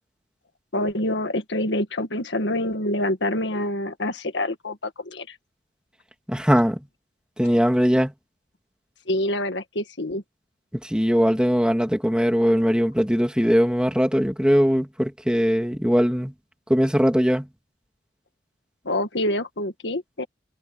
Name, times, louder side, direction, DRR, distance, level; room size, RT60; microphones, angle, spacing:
voice 1, 0.7-5.4 9.1-10.2 18.9-20.3, left 1 dB, 70° left, 1.8 m, -26 dB
voice 2, 6.3-6.8 7.4-8.1 10.8-16.3 16.7-17.5, equal, 5° right, 2.3 m, -20 dB
head